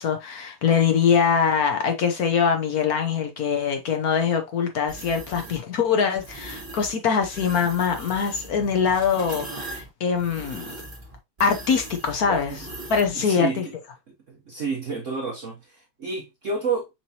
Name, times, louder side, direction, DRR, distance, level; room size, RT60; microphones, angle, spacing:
voice 1, 0.0-10.7 11.4-12.6 12.9-13.5, left 6 dB, 60° left, 1.1 m, -23 dB
sound 1, 4.9-5.6 6.2-6.9 7.2-13.1, right 2 dB, 25° right, 1.9 m, -39 dB
voice 2, 12.2-12.7 13.1-13.6 14.3-16.9, right 4 dB, 50° right, 1.0 m, -30 dB
5.8 x 3.3 x 2.7 m
omnidirectional pair, 2.3 m